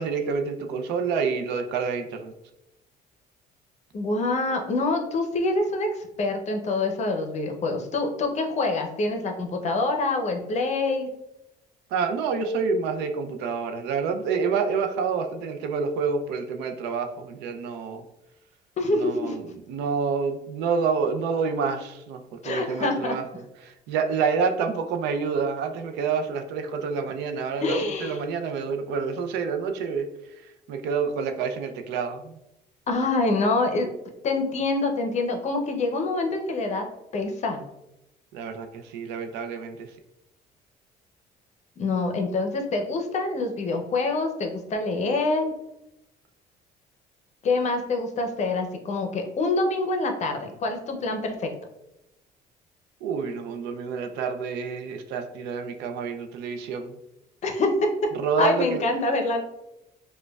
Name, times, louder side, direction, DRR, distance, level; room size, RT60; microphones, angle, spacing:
voice 1, 0.0-2.3 11.9-18.0 18.9-30.1 30.7-32.4 38.3-39.9 53.0-57.0 58.1-58.8, right 5 dB, 90° right, 6 dB, 0.5 m, -28 dB
voice 2, 3.9-11.1 18.8-19.4 22.4-23.2 27.6-28.2 32.9-33.9 34.2-36.9 37.1-37.6 41.8-45.5 47.4-51.5 57.4-58.1 58.4-59.4, left 2 dB, 45° left, 4 dB, 0.6 m, -26 dB
5.0 x 2.2 x 2.3 m, 0.87 s
cardioid pair, 110°, 17 cm